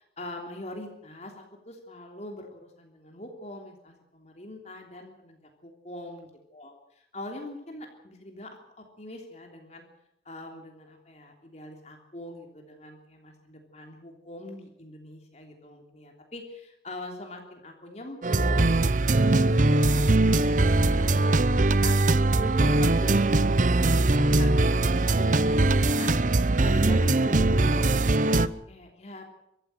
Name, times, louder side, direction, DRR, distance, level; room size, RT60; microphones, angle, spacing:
voice 1, 0.2-9.8 10.2-22.0 22.3-23.5 23.7-26.1 26.5-29.3, left 1 dB, 40° left, 3 dB, 3.2 m, -42 dB
sound 1, 18.2-28.5, right 2 dB, 45° right, 0.8 m, -21 dB
24.5 x 14.5 x 7.9 m, 0.81 s
head